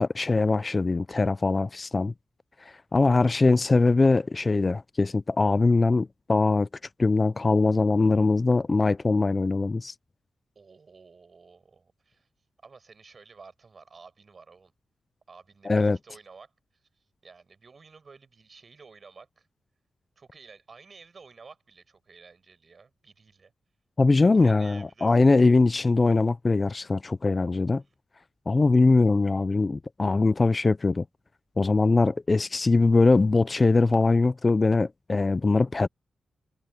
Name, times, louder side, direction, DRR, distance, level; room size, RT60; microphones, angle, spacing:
voice 1, 0.0-2.1 2.9-6.7 7.0-9.9 15.7-16.0 24.0-27.8 28.5-31.0 31.6-35.9, left 3 dB, 25° left, 0.3 m, -22 dB
voice 2, 10.5-12.3 12.6-14.7 15.3-16.9 17.2-19.5 20.2-23.5 24.3-25.2, right 4 dB, 40° right, 6.5 m, -52 dB
wide cardioid pair, 130°, 0 cm